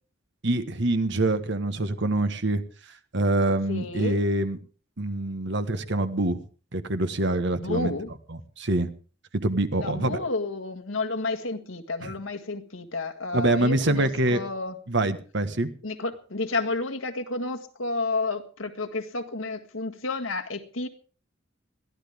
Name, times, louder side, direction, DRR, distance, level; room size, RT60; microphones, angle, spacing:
voice 1, 0.4-2.6 3.1-4.6 5.0-6.4 6.7-7.9 8.3-8.9 9.3-10.2 12.0-12.1 13.3-14.4 14.9-15.7, right 2 dB, 60° right, 11 dB, 1.4 m, -25 dB
voice 2, 3.7-4.2 7.6-8.1 9.8-14.7 15.8-20.9, left 3 dB, 85° left, 7 dB, 1.8 m, -31 dB
21.5 x 14.5 x 3.6 m, 0.38 s
head